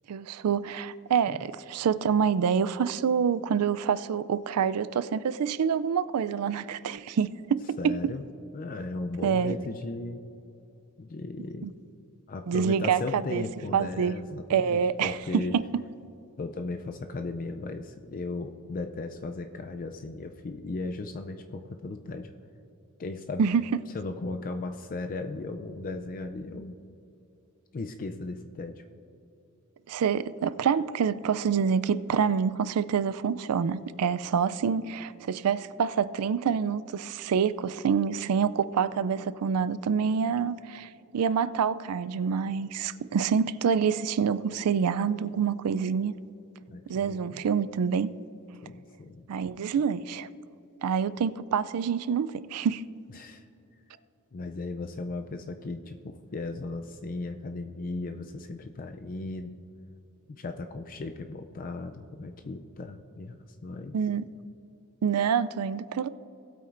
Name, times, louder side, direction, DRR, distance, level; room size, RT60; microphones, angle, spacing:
voice 1, 0.1-8.0 9.2-9.5 11.6-11.7 12.5-13.4 13.7-14.2 14.5-15.8 23.4-23.6 29.9-46.2 46.9-48.1 49.3-50.3 50.8-52.8 63.9-64.3 65.0-66.1, right 7 dB, 80° right, 0.4 m, -27 dB
voice 2, 7.8-8.2 8.5-10.2 11.0-11.7 12.3-15.6 16.4-22.3 23.0-23.4 23.9-26.7 27.7-28.8 46.7-47.4 48.6-49.3 53.1-53.5 54.3-59.6 60.3-64.0, left 3 dB, 40° left, 0.4 m, -36 dB
18.5 x 8.6 x 2.5 m
head